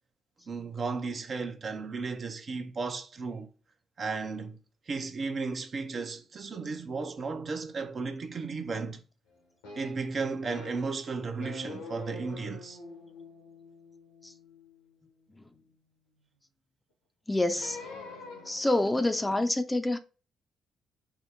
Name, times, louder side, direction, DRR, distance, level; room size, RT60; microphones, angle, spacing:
voice 1, 0.5-3.5 4.0-4.6 4.9-9.0 9.7-12.8, right 4 dB, 45° right, 0.6 m, -34 dB
sound 1, 9.6-11.0 11.4-15.7 17.5-18.8, left 3 dB, 80° left, 1.0 m, -46 dB
voice 2, 17.3-17.8 18.5-20.0, left 2 dB, 15° left, 0.5 m, -27 dB
4.6 x 2.0 x 3.6 m
hypercardioid pair, 45°, 0 cm